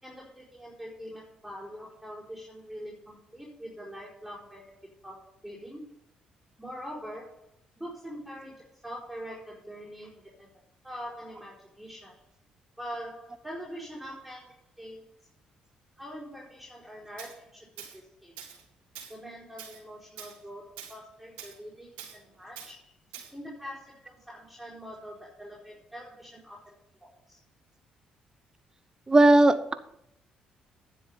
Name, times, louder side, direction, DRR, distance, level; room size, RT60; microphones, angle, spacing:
voice 1, 0.0-5.9 6.6-7.5 7.8-10.5 10.8-12.2 12.8-15.0 16.0-17.7 17.9-18.3 19.1-22.9 23.3-26.7 27.0-27.4, equal, 5° right, -7 dB, 4.6 m, -43 dB
Tools, 17.2-17.3 17.8-18.0 18.4-18.6 18.9-19.2 19.6-19.8 20.2-20.4 20.8-21.0 21.4-21.6 22.0-22.2 22.6-22.7 23.1-23.3, right 8 dB, 90° right, 2.2 m, -44 dB
voice 2, 29.1-29.7, right 2 dB, 25° right, 12 dB, 1.0 m, -18 dB
10.0 x 7.7 x 5.6 m, 0.73 s
supercardioid pair, 65°, 3 cm